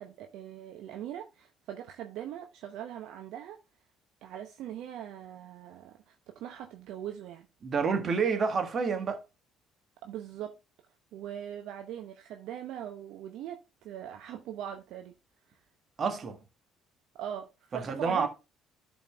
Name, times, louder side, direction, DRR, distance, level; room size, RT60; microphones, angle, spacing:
voice 1, 0.0-3.6 4.2-7.5 10.0-10.5 11.1-15.2 15.5-15.6 17.2-18.3, right 10 dB, 65° right, 0.7 m, -41 dB
voice 2, 7.6-9.2 16.0-16.4 17.7-18.3, right 5 dB, 45° right, 1.5 m, -28 dB
11.0 x 4.4 x 3.3 m
hypercardioid pair, 55°, 0 cm